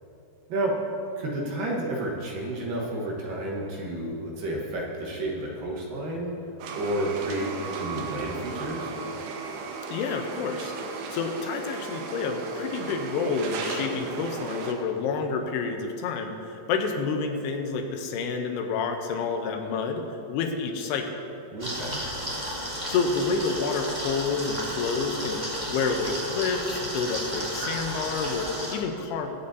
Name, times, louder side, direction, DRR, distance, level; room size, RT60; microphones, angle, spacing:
voice 1, 1.2-6.3 6.7-8.9 21.5-22.1, right 1 dB, 65° right, -3 dB, 2.8 m, -31 dB
sound 1, 6.6-14.7, right 5 dB, 80° right, 2.9 m, -35 dB
voice 2, 9.9-10.7 11.1-21.2 22.9-25.4 25.7-29.3, left 5 dB, 80° left, 4 dB, 2.7 m, -29 dB
sound 2, 21.6-28.7, equal, 15° right, 1.3 m, -33 dB
22.0 x 8.6 x 2.7 m, 2.8 s
omnidirectional pair, 4.8 m